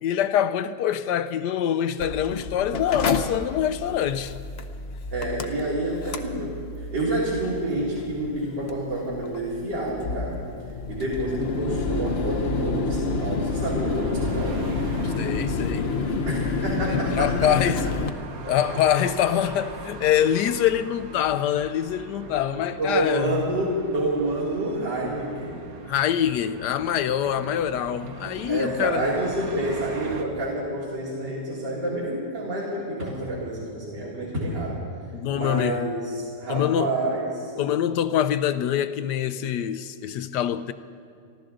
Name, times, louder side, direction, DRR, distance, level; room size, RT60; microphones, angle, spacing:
voice 1, 0.0-4.4 15.0-15.9 16.9-17.9 18.4-23.4 25.9-29.0 35.1-35.8 36.5-36.9 37.6-40.7, left 10 dB, 75° left, 1.1 m, -25 dB
Mechanical fan, 2.0-18.1, left 4 dB, 55° left, 0.7 m, -29 dB
voice 2, 5.1-10.4 10.9-14.7 16.2-17.5 22.8-25.6 28.5-34.8 35.3-37.5, right 1 dB, 80° right, 3.2 m, -28 dB
sound 1, 11.9-30.3, right 4 dB, 60° right, 1.3 m, -41 dB
29.5 x 12.0 x 3.8 m
omnidirectional pair, 1.9 m